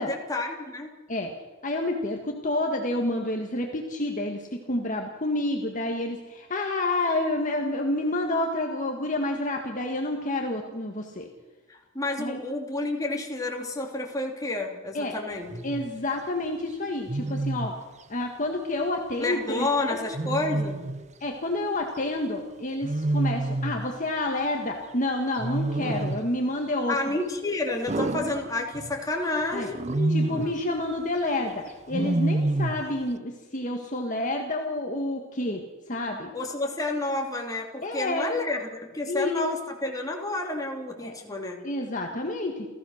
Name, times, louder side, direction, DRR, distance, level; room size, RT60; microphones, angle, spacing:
voice 1, 0.0-0.9 11.7-15.5 19.2-20.8 26.9-30.5 36.3-41.6, left 2 dB, 15° left, 0 dB, 2.9 m, -30 dB
voice 2, 1.6-11.3 12.2-12.4 14.9-15.2 15.6-17.7 18.1-20.0 21.2-27.0 29.5-29.7 30.1-35.6 35.9-36.3 37.8-38.3 39.1-39.5 41.0-41.1 41.6-42.7, left 1 dB, 35° left, 2 dB, 1.7 m, -29 dB
Wild animals, 15.5-15.9 17.1-17.8 20.1-21.1 22.8-23.9 25.4-26.3 27.9-29.0 29.7-30.6 31.9-32.9, right 2 dB, 35° right, 0.7 m, -28 dB
30.0 x 14.5 x 6.6 m, 1.2 s
head